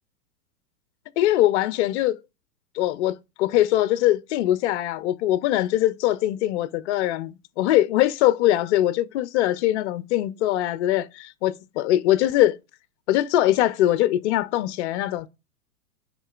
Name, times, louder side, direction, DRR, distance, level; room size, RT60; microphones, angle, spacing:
voice 1, 1.2-2.2 2.7-12.6 13.1-15.3, left 14 dB, 45° left, 0.7 m, -22 dB
10.0 x 3.8 x 2.4 m
hypercardioid pair, 135°, 49 cm